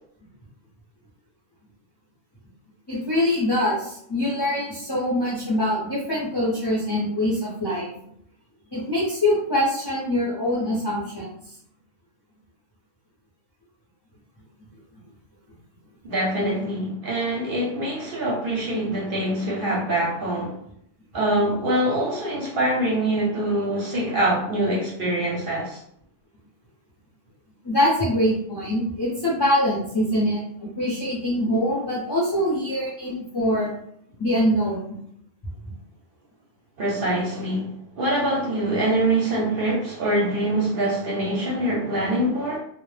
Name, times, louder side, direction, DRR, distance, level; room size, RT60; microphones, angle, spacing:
voice 1, 2.9-7.9 8.7-11.3 27.6-33.7 34.2-34.8, left 1 dB, 35° left, -6 dB, 0.4 m, -24 dB
voice 2, 16.0-20.6 21.1-25.8 36.8-42.6, right 1 dB, 55° right, -3 dB, 0.7 m, -24 dB
2.0 x 2.0 x 3.1 m, 0.70 s
omnidirectional pair, 1.3 m